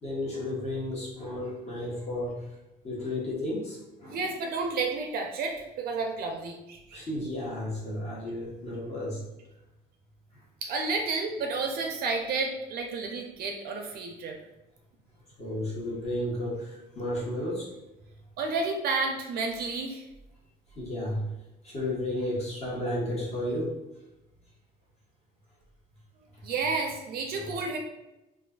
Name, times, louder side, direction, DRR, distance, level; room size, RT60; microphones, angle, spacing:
voice 1, 0.0-2.5 2.8-4.2 6.9-9.2 10.3-10.4 15.4-17.7 20.8-21.2 21.6-23.7 26.3-26.4, left 1 dB, 40° left, -5 dB, 1.0 m, -33 dB
voice 2, 4.1-7.0 10.6-14.4 18.4-20.0 26.4-27.8, right 4 dB, 65° right, 3 dB, 0.4 m, -31 dB
2.4 x 2.3 x 2.2 m, 0.95 s
cardioid pair, 110°, 17 cm